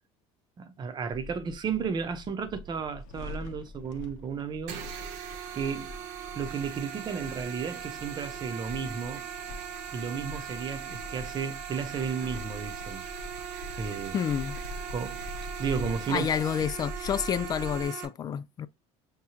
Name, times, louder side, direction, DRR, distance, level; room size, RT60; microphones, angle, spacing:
voice 1, 0.6-4.8 5.5-5.9 6.3-9.3 9.9-13.1 13.8-14.2 14.9-15.3 15.6-16.3, right 6 dB, 30° right, 0.8 m, -33 dB
sound 1, 1.1-17.8, left 1 dB, 65° left, 0.8 m, -43 dB
sound 2, 4.7-18.1, right 9 dB, 75° right, 1.0 m, -40 dB
voice 2, 14.1-14.6 16.1-18.7, left 8 dB, 25° left, 0.3 m, -29 dB
6.4 x 2.3 x 2.8 m
cardioid pair, 135°, 14 cm